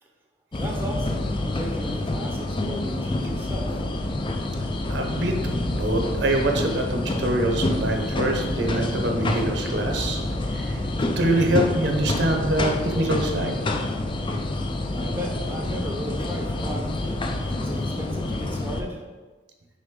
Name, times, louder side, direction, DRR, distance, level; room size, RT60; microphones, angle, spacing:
sound 1, 0.5-18.8, left 1 dB, 25° left, 0.4 m, -27 dB
voice 1, 0.5-3.9 14.9-17.2 17.6-19.0, equal, 10° right, 0 dB, 0.7 m, -36 dB
voice 2, 4.9-10.2 10.5-10.8 11.2-13.6, right 1 dB, 60° right, 3 dB, 0.8 m, -25 dB
6.5 x 5.1 x 3.7 m, 1.3 s
head